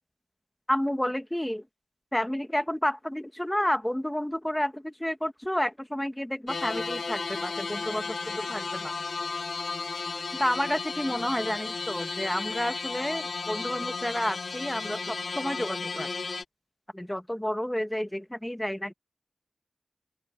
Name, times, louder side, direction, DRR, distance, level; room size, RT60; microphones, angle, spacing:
voice 1, 0.7-1.6 2.1-9.0 10.4-16.1 16.9-18.9, equal, 10° left, 1.4 m, -30 dB
sound 1, 6.5-16.4, left 4 dB, 80° left, 0.6 m, -34 dB
open air
wide cardioid pair, 55°, 0 cm